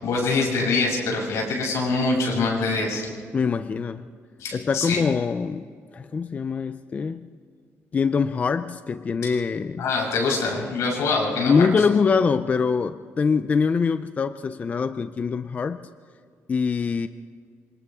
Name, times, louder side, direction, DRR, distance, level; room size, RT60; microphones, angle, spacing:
voice 1, 0.0-3.1 4.4-5.0 9.2-9.3 9.8-11.7, left 3 dB, 80° left, -2 dB, 7.1 m, -24 dB
voice 2, 3.3-4.1 4.5-7.3 7.9-9.9 11.4-15.8 16.5-17.1, left 5 dB, 30° left, 11 dB, 0.5 m, -24 dB
28.0 x 26.0 x 3.6 m, 2.2 s
cardioid pair, 155°, 5 cm